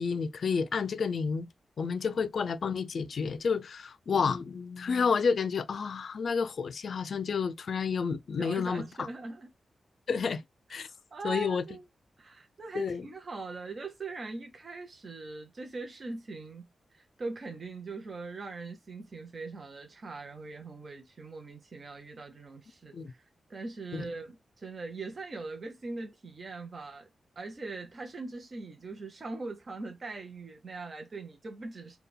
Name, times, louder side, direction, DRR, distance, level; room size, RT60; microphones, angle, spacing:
voice 1, 0.0-1.5 1.8-9.1 10.1-10.4 10.7-10.9 11.2-11.6 12.7-13.1 22.9-23.1 23.9-24.0, left 5 dB, 60° left, 0.4 m, -30 dB
voice 2, 8.4-9.5 10.8-11.9 12.2-23.2 23.5-27.1 27.4-32.0, right 3 dB, 35° right, 0.8 m, -41 dB
4.4 x 2.3 x 3.2 m
wide cardioid pair, 165°, 0 cm